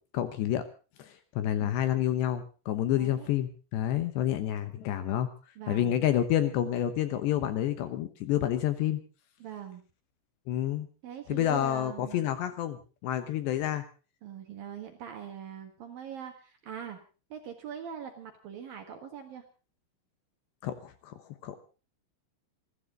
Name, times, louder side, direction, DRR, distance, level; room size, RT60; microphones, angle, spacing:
voice 1, 0.1-0.6 1.0-5.3 5.7-9.0 10.5-10.9 11.3-13.8 20.6-21.1 21.4-21.6, left 11 dB, 70° left, 10 dB, 2.9 m, -29 dB
voice 2, 2.9-3.3 5.6-5.9 9.4-9.8 11.0-12.3 14.2-17.0 17.3-19.4, right 8 dB, 60° right, 5 dB, 2.6 m, -42 dB
28.5 x 12.5 x 3.8 m, 0.35 s
omnidirectional pair, 5.8 m